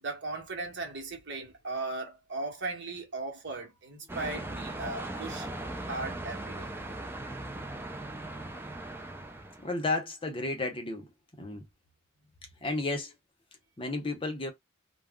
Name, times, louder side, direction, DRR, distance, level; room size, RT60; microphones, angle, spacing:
voice 1, 0.0-5.5 5.9-6.7, right 3 dB, 55° right, 1.0 m, -37 dB
sound 1, 4.1-9.7, right 2 dB, 10° right, 0.4 m, -39 dB
voice 2, 9.6-11.1 11.4-11.6 12.6-13.1 13.8-14.5, left 2 dB, 25° left, 0.7 m, -32 dB
2.3 x 2.0 x 3.5 m
head